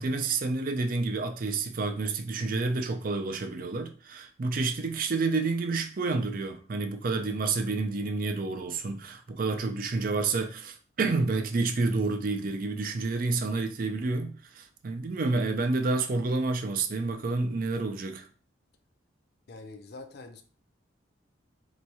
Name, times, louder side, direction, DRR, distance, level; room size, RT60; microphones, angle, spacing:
voice 1, 0.0-18.3, right 3 dB, 45° right, 0.4 m, -29 dB
voice 2, 19.5-20.4, left 3 dB, 55° left, 0.5 m, -45 dB
3.0 x 2.3 x 4.0 m
head